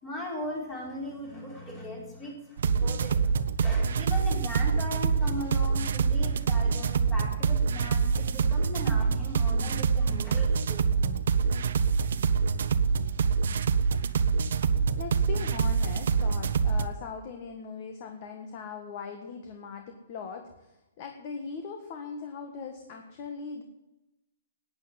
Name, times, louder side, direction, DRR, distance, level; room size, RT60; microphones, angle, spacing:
voice 1, 0.0-11.2, left 1 dB, 20° left, -2 dB, 4.6 m, -38 dB
sound 1, 2.6-16.9, right 5 dB, 70° right, 0.9 m, -25 dB
voice 2, 15.0-23.6, left 5 dB, 35° left, 5 dB, 1.6 m, -40 dB
12.0 x 9.4 x 9.5 m, 0.96 s
hypercardioid pair, 160°, 0 cm